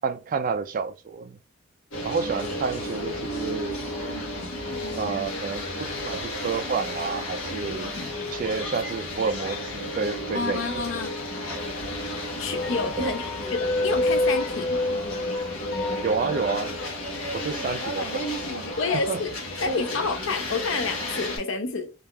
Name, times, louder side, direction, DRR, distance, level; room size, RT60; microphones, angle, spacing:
voice 1, 0.0-1.4 2.0-3.8 4.9-7.9 8.3-10.8 13.0-13.2 16.0-16.8 17.3-18.7 18.9-19.2 19.7-19.8, right 5 dB, 40° right, 0.3 m, -30 dB
sound 1, 1.9-21.4, left 1 dB, 85° left, 1.0 m, -33 dB
voice 2, 7.5-8.1 10.3-11.1 12.4-15.0 18.8-19.3 19.6-21.9, left 4 dB, 65° left, 0.6 m, -29 dB
sound 2, 10.3-11.4 11.8-16.7, left 2 dB, 50° left, 1.0 m, -29 dB
3.3 x 2.4 x 2.2 m
head